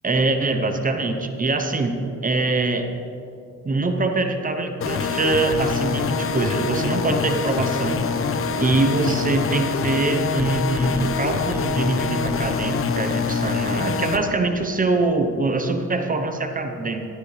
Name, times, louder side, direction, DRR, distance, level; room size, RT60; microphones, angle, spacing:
voice 1, 0.0-1.9 2.2-2.9 3.6-8.1 8.6-17.1, right 3 dB, 25° right, 6 dB, 0.9 m, -23 dB
sound 1, 4.8-14.2, left 5 dB, 45° left, 0.8 m, -25 dB
14.5 x 9.9 x 3.3 m, 2.8 s
cardioid pair, 90°, 30 cm